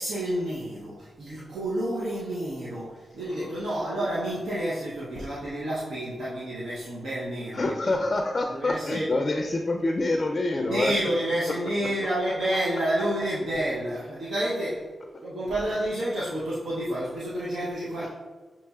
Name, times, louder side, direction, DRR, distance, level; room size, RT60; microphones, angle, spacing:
voice 1, 0.0-7.9 8.5-9.1 10.5-14.9 15.2-18.1, right 1 dB, 80° right, -7 dB, 0.7 m, -29 dB
voice 2, 7.5-10.9 18.0-18.1, left 2 dB, 45° left, 4 dB, 0.4 m, -26 dB
6.4 x 3.0 x 2.3 m, 1.4 s
cardioid pair, 50°, 0 cm